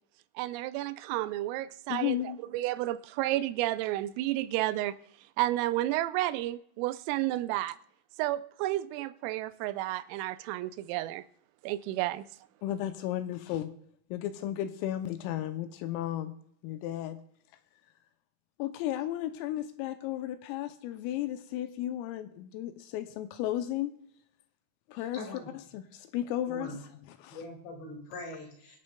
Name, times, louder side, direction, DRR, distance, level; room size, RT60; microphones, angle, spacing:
voice 1, 0.4-5.0 5.4-7.8 8.2-11.2 11.6-12.3, right 15 dB, 85° right, 3.1 m, -31 dB
voice 2, 1.9-2.4 12.6-13.7 14.1-16.4 16.6-17.2 18.6-23.9 24.9-25.2 25.7-26.7 27.2-27.4, left 12 dB, 85° left, 3.2 m, -34 dB
voice 3, 24.9-25.5 26.5-26.8 27.3-28.8, left 2 dB, 65° left, 3.9 m, -42 dB
24.5 x 8.5 x 2.2 m
omnidirectional pair, 6.0 m